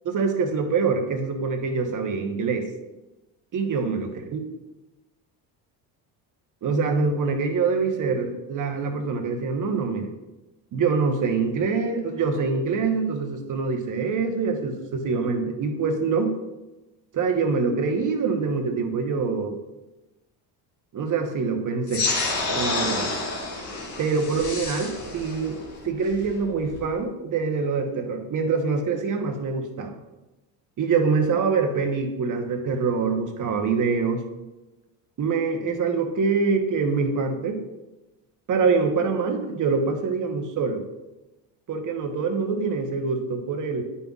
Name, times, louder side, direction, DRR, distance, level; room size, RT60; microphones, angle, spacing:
voice 1, 0.0-2.7 3.5-4.4 6.6-10.1 10.7-16.3 17.1-19.6 20.9-22.1 22.5-23.1 24.0-25.6 25.8-30.0 30.8-34.2 35.2-37.6 38.5-40.8 41.7-43.8, right 4 dB, 45° right, 4 dB, 1.1 m, -25 dB
sound 1, 21.9-26.9, left 3 dB, 85° left, 1.9 m, -29 dB
8.9 x 5.6 x 2.4 m, 1.1 s
supercardioid pair, 95°, 43 cm